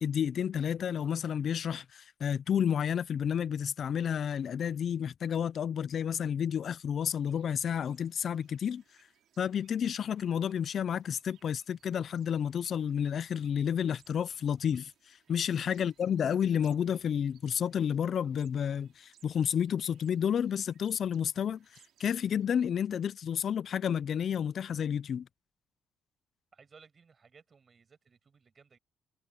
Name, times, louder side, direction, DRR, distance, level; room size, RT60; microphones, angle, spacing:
voice 1, 0.0-8.8 9.4-25.3, left 8 dB, 60° left, 0.4 m, -31 dB
sound 1, 7.0-22.5, right 11 dB, 75° right, 4.9 m, -68 dB
voice 2, 15.3-15.6 26.5-28.8, right 5 dB, 40° right, 8.0 m, -60 dB
cardioid pair, 90°, 0 cm